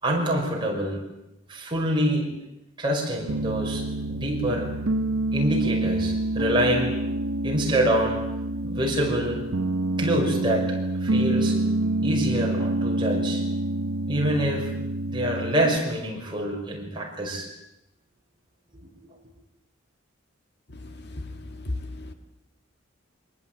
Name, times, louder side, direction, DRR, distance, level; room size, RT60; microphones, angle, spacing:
voice 1, 0.0-1.0 1.5-2.3 2.8-4.7 5.3-7.0 7.4-8.2 8.6-9.4 10.0-11.6 12.0-13.5 14.1-14.7 15.1-17.5 18.8-18.9, right 1 dB, 20° right, 0 dB, 5.5 m, -26 dB
Piano, 3.3-15.8, right 2 dB, 80° right, 1.0 m, -27 dB
voice 2, 20.8-21.2 21.6-22.1, left 2 dB, 50° left, 7 dB, 1.9 m, -34 dB
25.0 x 19.0 x 9.0 m, 0.88 s
head